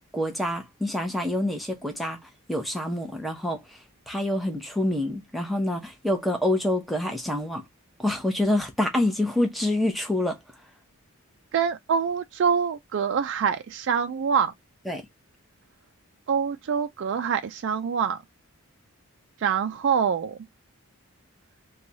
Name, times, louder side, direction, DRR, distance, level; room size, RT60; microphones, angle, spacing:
voice 1, 0.1-2.2 2.5-3.6 4.1-7.6 8.0-10.4 14.9-15.1, left 1 dB, ahead, 0.7 m, -26 dB
voice 2, 11.5-14.5 16.3-18.2 19.4-20.4, right 7 dB, 55° right, 0.3 m, -25 dB
3.1 x 2.3 x 3.9 m
head